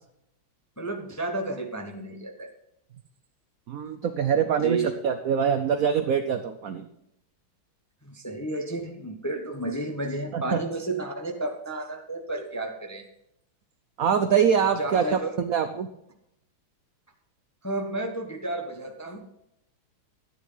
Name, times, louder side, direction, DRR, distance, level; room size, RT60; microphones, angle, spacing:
voice 1, 0.8-2.5 4.6-4.9 8.0-13.0 14.8-15.3 17.6-19.2, right 2 dB, 15° left, 3 dB, 0.7 m, -32 dB
voice 2, 3.7-6.9 10.3-10.6 14.0-15.9, right 7 dB, 80° right, 9 dB, 0.7 m, -24 dB
13.5 x 10.0 x 3.9 m, 0.80 s
omnidirectional pair, 2.3 m